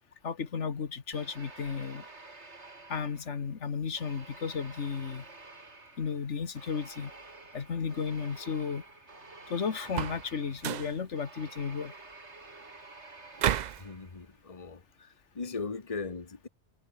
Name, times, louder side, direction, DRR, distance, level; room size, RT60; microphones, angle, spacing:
voice 1, 0.2-2.0 2.9-5.2 6.0-7.1 7.5-8.8 9.5-11.9, left 6 dB, 90° left, 1.8 m, -34 dB
sound 1, 1.1-3.5 4.0-14.3, right 3 dB, 75° right, 3.7 m, -50 dB
sound 2, 9.8-10.3 10.6-11.0 13.4-13.9, right 10 dB, 55° right, 0.5 m, -31 dB
voice 2, 13.8-15.1 15.3-16.5, left 4 dB, 30° left, 1.4 m, -38 dB
omnidirectional pair, 1.2 m